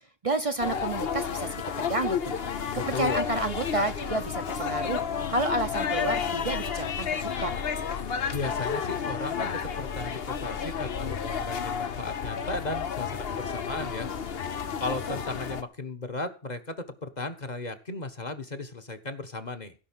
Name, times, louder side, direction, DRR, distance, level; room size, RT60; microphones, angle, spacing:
voice 1, 0.2-2.3 2.7-5.0 5.3-7.5, right 2 dB, 35° right, 7 dB, 0.9 m, -30 dB
sound 1, 0.6-15.6, left 7 dB, 75° left, 1.1 m, -31 dB
voice 2, 2.7-3.2 8.3-14.1 14.8-19.7, left 3 dB, 45° left, 6 dB, 1.5 m, -35 dB
16.0 x 5.6 x 7.4 m, 0.36 s
omnidirectional pair, 1.0 m